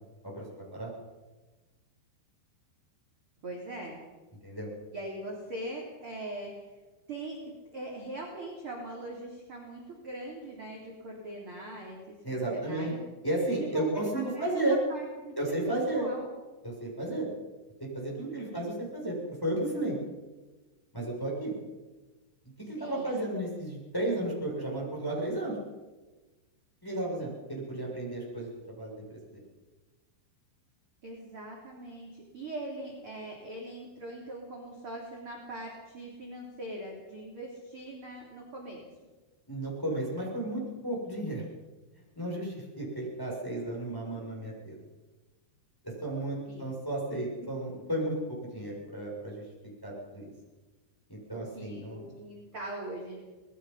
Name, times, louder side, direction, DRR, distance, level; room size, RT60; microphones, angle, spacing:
voice 1, 0.2-0.9 4.4-4.7 12.2-12.9 13.2-14.8 15.4-16.1 16.6-17.3 17.9-19.2 19.4-20.0 20.9-21.5 22.7-25.6 26.8-28.5 28.8-29.4 39.5-41.4 42.2-44.7 45.8-48.2 48.4-49.4 49.8-50.3 51.1-52.1, right 1 dB, 5° left, -4 dB, 6.5 m, -33 dB
voice 2, 3.4-4.0 4.9-6.8 7.1-13.0 13.6-14.0 14.3-14.6 14.9-16.3 18.2-18.7 22.8-23.3 31.0-38.8 46.5-46.7 47.1-47.2 51.3-53.2, right 2 dB, 30° right, -2 dB, 3.6 m, -41 dB
25.5 x 20.5 x 5.7 m, 1.2 s
omnidirectional pair, 5.3 m